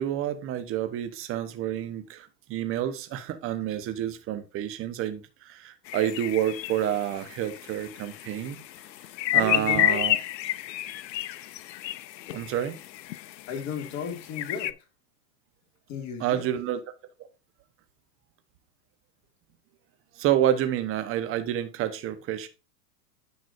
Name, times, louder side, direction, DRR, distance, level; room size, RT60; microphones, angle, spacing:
voice 1, 0.0-8.6 9.3-10.2 12.3-12.7 16.2-16.8 20.2-22.5, right 11 dB, 25° right, 1.0 m, -29 dB
sound 1, 5.9-14.7, left 14 dB, 85° left, 0.6 m, -31 dB
voice 2, 9.3-10.0 13.5-14.7 15.9-16.5, left 6 dB, 35° left, 2.2 m, -34 dB
9.6 x 6.1 x 2.6 m
hypercardioid pair, 130°, 49 cm